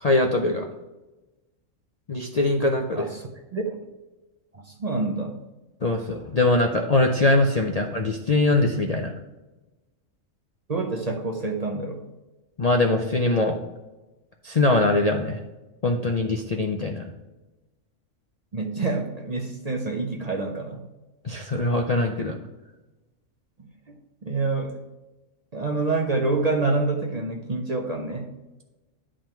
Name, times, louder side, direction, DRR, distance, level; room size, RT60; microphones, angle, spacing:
voice 1, 0.0-0.7 2.1-3.1 5.8-9.1 12.6-13.6 14.4-15.4 15.8-17.1 21.2-22.4, left 2 dB, 45° left, 2 dB, 0.5 m, -22 dB
voice 2, 2.9-3.8 4.5-5.4 10.7-12.0 18.5-20.8 23.6-23.7 24.2-24.8 25.5-28.3, right 3 dB, 35° right, 2 dB, 0.7 m, -27 dB
11.0 x 3.8 x 4.4 m, 1.1 s
omnidirectional pair, 1.4 m